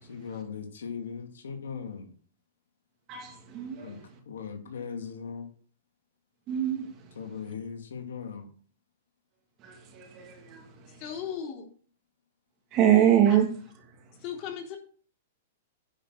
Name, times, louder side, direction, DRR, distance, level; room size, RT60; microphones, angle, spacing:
voice 1, 0.0-2.1 3.8-4.0 4.3-5.5 7.1-8.5, left 6 dB, 90° left, 2.5 m, -38 dB
voice 2, 3.1-3.9 6.5-6.9 9.6-10.7 12.7-13.5, right 10 dB, 35° right, 2.7 m, -24 dB
voice 3, 11.0-11.7 14.2-14.8, left 8 dB, 40° left, 3.7 m, -36 dB
10.0 x 6.0 x 6.3 m
hypercardioid pair, 135°, 0 cm